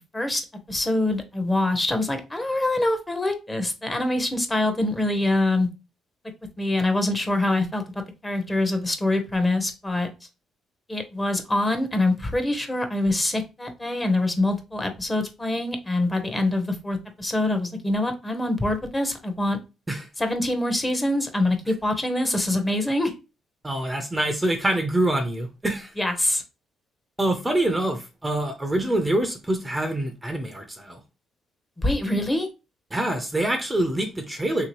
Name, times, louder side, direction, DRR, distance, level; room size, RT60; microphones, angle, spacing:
voice 1, 0.1-5.7 6.6-7.8 8.2-10.1 10.9-19.6 20.2-23.1 26.0-26.4 31.8-32.5, left 1 dB, 15° left, 0.8 m, -24 dB
voice 2, 23.6-25.9 27.2-31.0 32.9-34.7, right 1 dB, 15° right, 0.6 m, -25 dB
3.3 x 2.8 x 3.0 m
cardioid pair, 90°, 0 cm